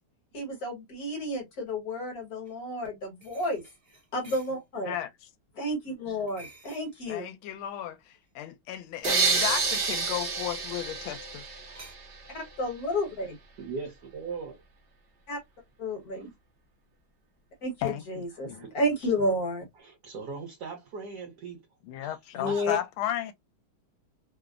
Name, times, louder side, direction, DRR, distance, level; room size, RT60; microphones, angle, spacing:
voice 1, 0.3-3.6 4.1-4.9 5.6-7.3 12.3-13.4 15.3-15.4 15.8-16.3 17.6-19.6 22.3-22.8, left 1 dB, 50° left, 1.3 m, -31 dB
sound 1, 2.5-2.6 3.2-4.5 6.3-6.9 8.9-9.7 10.4-10.6 11.7-11.9, right 3 dB, 20° right, 0.9 m, -48 dB
voice 2, 7.1-11.4 17.8-18.7 21.8-23.3, left 12 dB, 80° left, 1.4 m, -34 dB
sound 2, 9.0-12.0, right 4 dB, 85° right, 0.5 m, -28 dB
voice 3, 13.6-14.6 16.1-16.3 18.5-18.7 19.8-21.6 22.0-22.1 22.5-22.7, right 4 dB, 65° right, 1.2 m, -39 dB
3.4 x 2.0 x 2.2 m
omnidirectional pair, 2.3 m